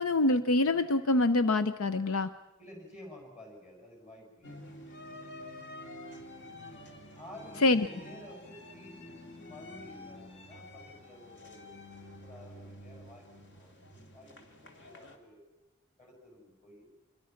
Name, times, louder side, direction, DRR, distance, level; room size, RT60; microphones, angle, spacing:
voice 1, 0.0-2.3 7.6-7.9, left 2 dB, 70° left, 12 dB, 0.7 m, -25 dB
voice 2, 2.6-4.6 7.2-11.8 12.2-13.8 14.1-15.5 16.0-16.9, left 1 dB, 30° left, 1 dB, 6.7 m, -52 dB
sound 1, 4.4-15.2, left 1 dB, 55° left, 2.6 m, -48 dB
26.5 x 22.5 x 5.8 m, 1.1 s
head